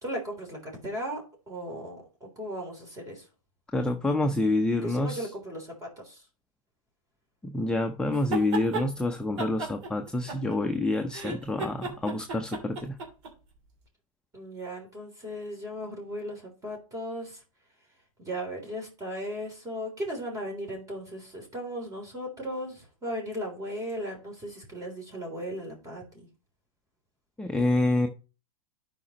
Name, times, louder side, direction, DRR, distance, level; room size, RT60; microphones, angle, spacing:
voice 1, 0.0-1.2 1.5-3.3 4.8-6.3 14.3-17.4 18.2-26.3, equal, 20° right, 1 dB, 3.4 m, -37 dB
voice 2, 3.7-5.3 7.4-13.0 27.4-28.1, left 2 dB, 5° left, 5 dB, 0.7 m, -27 dB
sound 1, 8.1-8.9 9.4-10.8 11.1-13.3, right 3 dB, 60° right, 3.0 m, -34 dB
12.5 x 5.1 x 3.0 m, 0.33 s
hypercardioid pair, 105°, 18 cm